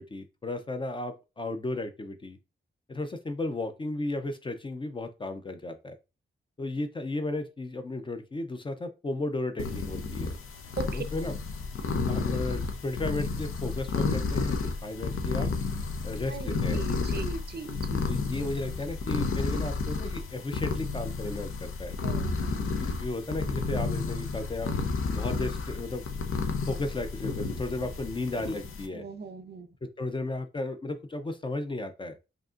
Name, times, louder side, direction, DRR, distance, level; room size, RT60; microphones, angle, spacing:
voice 1, 0.0-2.4 2.9-5.9 6.6-10.4 10.9-11.4 12.1-15.5 16.0-16.9 18.1-22.0 22.7-24.7 25.0-26.1 26.7-29.1 29.8-32.2, left 2 dB, 25° left, 0.4 m, -34 dB
sound 1, 9.6-28.9, left 4 dB, 90° left, 0.6 m, -31 dB
voice 2, 16.3-18.1 22.0-22.7 28.9-29.7, right 4 dB, 50° right, 0.5 m, -39 dB
4.9 x 2.8 x 2.4 m
wide cardioid pair, 165°, 21 cm